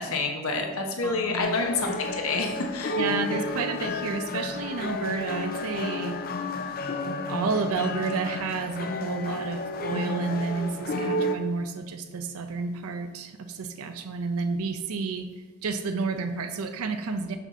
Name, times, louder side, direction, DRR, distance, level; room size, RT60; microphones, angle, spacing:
voice 1, 0.0-3.0, left 3 dB, 70° left, 3 dB, 1.0 m, -28 dB
voice 2, 1.0-1.5 3.0-6.8 7.3-17.4, right 4 dB, 75° right, 8 dB, 0.5 m, -31 dB
sound 1, 1.4-11.3, left 2 dB, 40° left, 0.5 m, -31 dB
6.8 x 5.7 x 3.7 m, 1.2 s
head